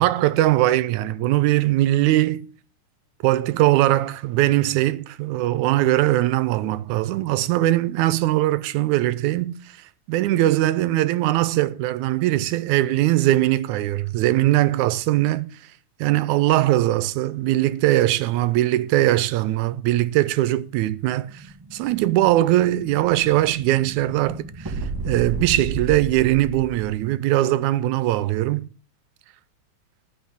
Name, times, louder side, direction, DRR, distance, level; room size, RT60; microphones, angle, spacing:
voice 1, 0.0-2.5 3.2-9.6 10.1-15.5 16.0-21.4 21.7-24.8 25.0-28.7, right 15 dB, 90° right, 2.1 m, -20 dB
Explosion, 21.3-27.0, right 3 dB, 30° right, 0.4 m, -33 dB
10.5 x 6.0 x 7.1 m
omnidirectional pair, 3.3 m